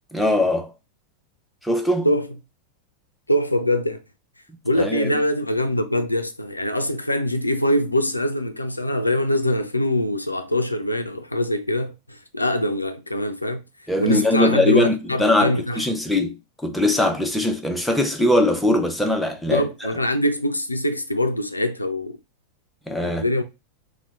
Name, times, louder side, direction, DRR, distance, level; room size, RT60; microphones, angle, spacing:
voice 1, 0.1-0.7 1.6-2.1 4.8-5.1 13.9-19.6 22.9-23.2, left 1 dB, ahead, 0.5 m, -21 dB
voice 2, 3.3-4.0 4.6-13.6 14.0-16.0 19.5-22.2 23.0-23.4, left 1 dB, 85° left, 0.4 m, -23 dB
2.8 x 2.1 x 3.4 m
figure-of-eight pair, 90°, 0 cm